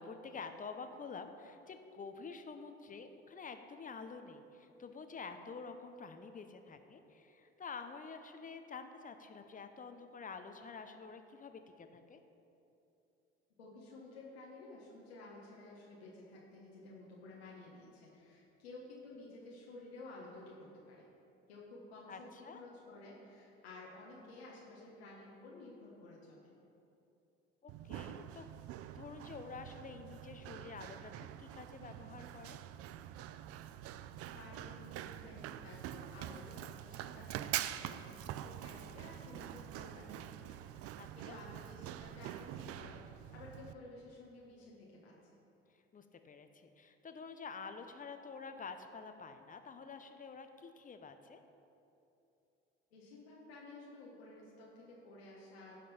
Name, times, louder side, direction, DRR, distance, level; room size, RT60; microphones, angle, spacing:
voice 1, 0.0-12.2 22.1-22.6 27.6-28.5 28.9-32.6 41.0-41.4 45.9-51.4, left 5 dB, 25° left, 7 dB, 0.9 m, -48 dB
voice 2, 13.6-20.6 20.9-21.0 21.5-22.3 22.5-26.5 34.3-45.4 52.9-55.8, left 2 dB, 85° left, -5 dB, 1.4 m, -53 dB
Run, 27.7-43.7, right 12 dB, 50° right, 0.5 m, -45 dB
15.5 x 5.2 x 4.4 m, 2.9 s
hypercardioid pair, 65°, 31 cm